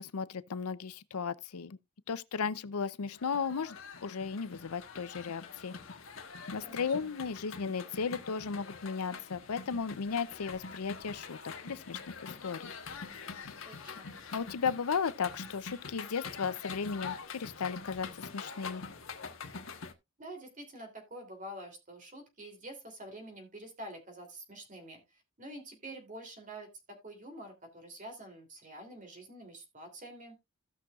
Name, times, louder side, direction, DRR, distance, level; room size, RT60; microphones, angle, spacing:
voice 1, 0.0-1.8 2.1-5.7 6.5-12.7 14.3-18.8, left 5 dB, 85° left, 0.6 m, -35 dB
sound 1, 3.2-19.9, left 5 dB, 60° left, 1.3 m, -45 dB
voice 2, 6.6-7.1 13.6-14.1 20.2-30.4, right 1 dB, 35° right, 3.1 m, -47 dB
16.5 x 6.2 x 2.4 m
head